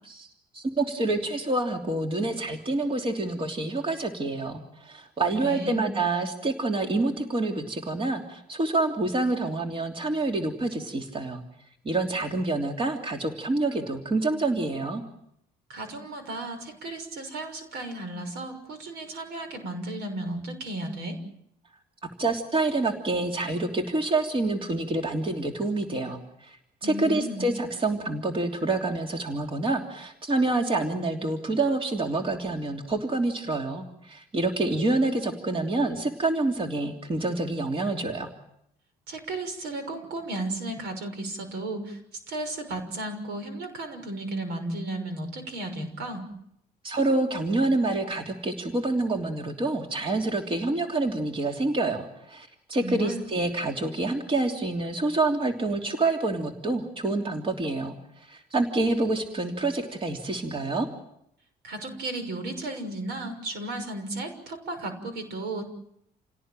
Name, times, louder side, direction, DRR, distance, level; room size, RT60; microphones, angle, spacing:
voice 1, 0.5-11.4 11.8-15.0 22.2-38.3 46.8-60.9, right 2 dB, 30° right, 3 dB, 3.1 m, -27 dB
voice 2, 5.4-5.9 15.7-21.2 26.8-27.5 39.1-42.0 42.3-46.3 52.8-53.2 61.6-65.7, right 2 dB, 80° right, 8 dB, 6.2 m, -34 dB
28.5 x 18.0 x 9.1 m, 0.78 s
cardioid pair, 110°, 17 cm